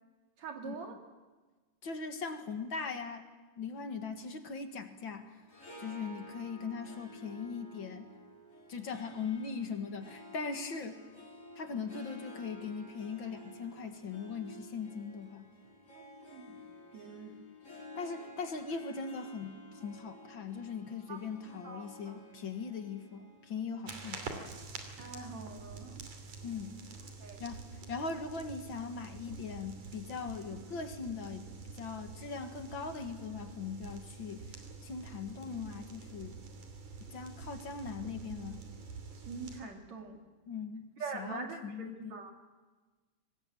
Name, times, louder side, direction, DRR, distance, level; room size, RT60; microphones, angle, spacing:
voice 1, 0.4-1.0 15.9-16.0 16.3-16.5 16.9-17.4 21.1-21.2 21.6-22.2 25.0-26.1 27.2-27.4 39.3-40.2 41.0-42.3, right 4 dB, 70° right, 3 dB, 3.5 m, -44 dB
voice 2, 1.8-3.2 3.6-5.3 5.8-8.1 8.7-11.0 11.6-15.5 18.0-24.3 26.4-26.8 27.4-27.6 27.9-36.4 37.1-38.6 40.5-40.9 41.1-42.1, left 5 dB, 45° left, 7 dB, 2.2 m, -40 dB
Harp, 5.4-24.7, equal, 25° left, 5.2 m, -52 dB
sound 1, 23.9-39.6, right 4 dB, 85° right, 4.3 m, -47 dB
24.5 x 20.0 x 8.9 m, 1.3 s
omnidirectional pair, 3.3 m